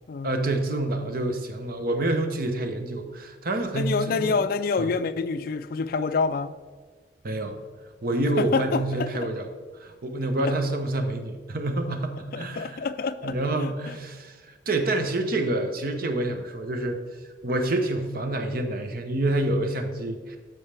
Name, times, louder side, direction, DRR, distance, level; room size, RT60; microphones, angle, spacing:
voice 1, 0.2-4.4 4.8-4.9 7.2-7.6 8.0-9.5 9.8-12.8 13.2-17.0 17.4-20.4, right 2 dB, 55° right, 6 dB, 0.8 m, -27 dB
voice 2, 3.7-6.5 8.4-9.3 10.5-10.6 12.3-14.0, left 4 dB, 55° left, 11 dB, 0.4 m, -27 dB
13.0 x 4.6 x 3.4 m, 1.4 s
head